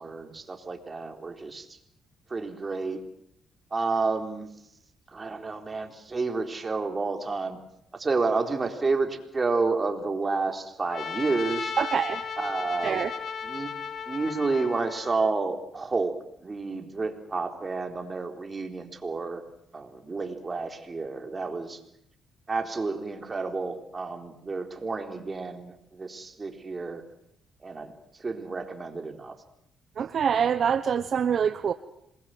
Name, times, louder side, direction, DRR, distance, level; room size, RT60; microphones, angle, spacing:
voice 1, 0.0-1.7 2.3-3.0 3.7-4.5 5.1-7.6 7.9-11.7 12.4-13.1 13.4-13.7 14.1-19.4 19.7-21.8 22.5-27.0 27.6-27.9 28.2-29.4, right 3 dB, 30° right, 4 dB, 4.0 m, -30 dB
Trumpet, 10.9-15.3, left 6 dB, 55° left, 2.4 m, -35 dB
voice 2, 11.8-12.2 12.8-13.1 30.0-31.7, right 7 dB, 55° right, 11 dB, 1.0 m, -25 dB
27.0 x 21.5 x 7.9 m, 0.77 s
cardioid pair, 90°, 0 cm